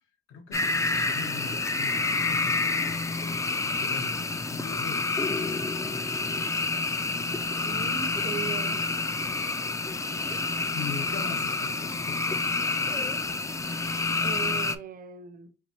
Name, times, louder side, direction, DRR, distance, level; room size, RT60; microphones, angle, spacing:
voice 1, 0.3-5.7 10.7-12.5, left 5 dB, 80° left, 1.0 m, -41 dB
sound 1, 0.5-14.8, left 3 dB, 15° left, 0.3 m, -28 dB
voice 2, 7.6-8.8 14.2-15.5, right 6 dB, 45° right, 0.6 m, -38 dB
4.4 x 2.7 x 2.8 m
cardioid pair, 90°, 20 cm